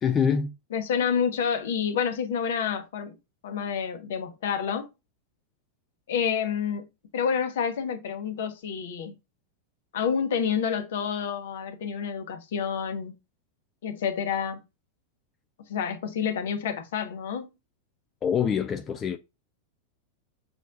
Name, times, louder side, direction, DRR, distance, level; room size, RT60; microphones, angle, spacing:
voice 1, 0.0-0.5 18.2-19.2, left 7 dB, 25° left, 0.4 m, -25 dB
voice 2, 0.7-3.2 3.4-4.9 6.1-6.9 7.1-9.1 9.9-13.2 13.8-14.6 15.7-17.5, left 7 dB, 60° left, 1.0 m, -28 dB
6.2 x 3.2 x 2.6 m
figure-of-eight pair, 90°, 0 cm